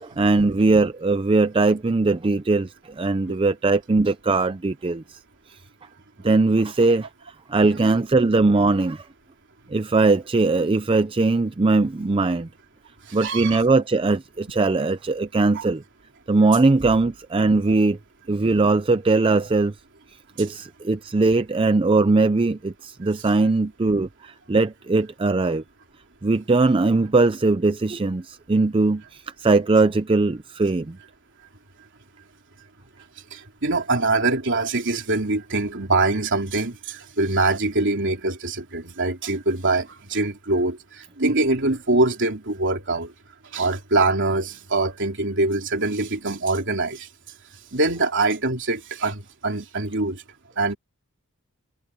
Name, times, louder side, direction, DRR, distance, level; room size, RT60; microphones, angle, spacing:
voice 1, 0.0-5.2 6.2-7.1 7.5-9.1 9.7-12.5 13.1-15.8 16.3-18.0 18.3-19.7 20.4-25.6 26.2-31.0, right 3 dB, 25° right, 0.5 m, -20 dB
voice 2, 13.1-13.6 15.5-15.7 33.3-43.1 43.5-47.1 47.7-50.2 50.6-50.8, right 2 dB, 55° right, 3.4 m, -24 dB
head